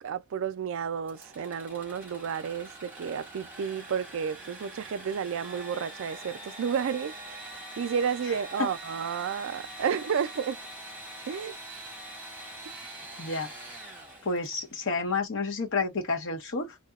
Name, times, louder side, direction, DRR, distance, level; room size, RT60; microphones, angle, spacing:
voice 1, 0.0-7.5 7.8-10.6 11.3-11.6, right 7 dB, 60° right, 0.4 m, -31 dB
Engine / Sawing, 1.0-14.8, right 1 dB, 10° right, 1.3 m, -44 dB
voice 2, 13.2-13.5 14.2-16.8, left 3 dB, 60° left, 1.1 m, -30 dB
2.8 x 2.1 x 2.4 m
head